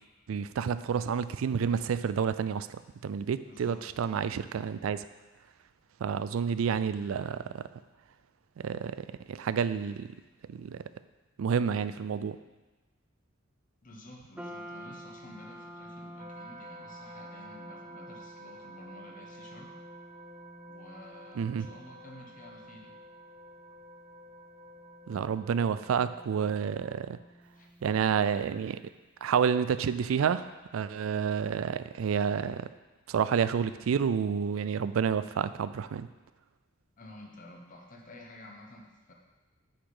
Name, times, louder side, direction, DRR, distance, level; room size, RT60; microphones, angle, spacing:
voice 1, 0.3-5.1 6.0-7.6 8.6-9.0 9.3-10.1 10.5-10.8 11.4-12.4 21.4-21.7 25.1-27.2 27.8-28.8 29.2-30.5 30.7-32.7 33.1-36.1, right 7 dB, 85° right, 13 dB, 0.3 m, -29 dB
voice 2, 3.5-3.8 13.8-19.8 20.7-23.0 27.5-27.7 37.0-39.1, left 1 dB, 40° left, 1 dB, 1.1 m, -51 dB
sound 1, 14.4-28.8, equal, 5° right, 0.4 m, -51 dB
sound 2, 16.2-27.1, right 1 dB, 30° right, 0.8 m, -50 dB
8.9 x 4.2 x 4.9 m, 1.2 s
head